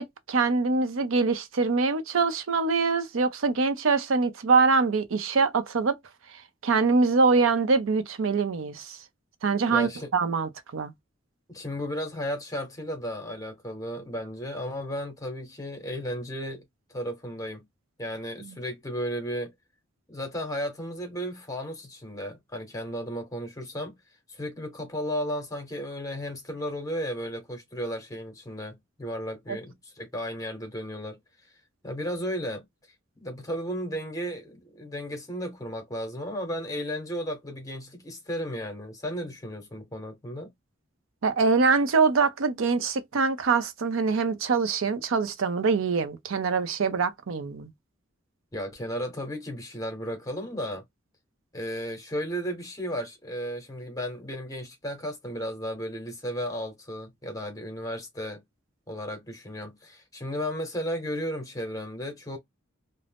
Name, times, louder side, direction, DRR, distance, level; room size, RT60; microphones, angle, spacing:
voice 1, 0.0-6.0 6.6-9.0 9.4-10.9 29.5-29.6 41.2-47.7, right 4 dB, 90° right, 0.6 m, -24 dB
voice 2, 9.7-10.1 11.5-16.6 16.9-17.7 18.0-19.5 20.1-24.0 24.3-31.2 31.8-32.7 33.2-40.5 48.5-50.8 51.5-58.4 58.9-62.4, equal, 15° left, 0.7 m, -34 dB
2.4 x 2.0 x 3.3 m
head